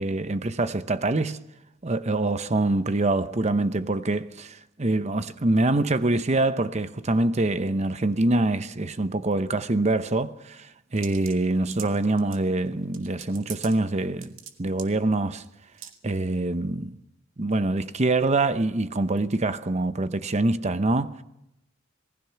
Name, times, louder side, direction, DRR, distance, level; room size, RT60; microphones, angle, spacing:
voice 1, 0.0-1.4 1.8-14.3 14.6-15.4 16.0-17.0 17.4-21.2, right 2 dB, 35° right, 0.8 m, -25 dB
sound 1, 11.0-12.4 12.9-13.7 14.0-14.5 14.8-14.9 15.4-15.5 15.8-16.0, right 10 dB, 75° right, 2.2 m, -41 dB
27.0 x 20.0 x 5.8 m
head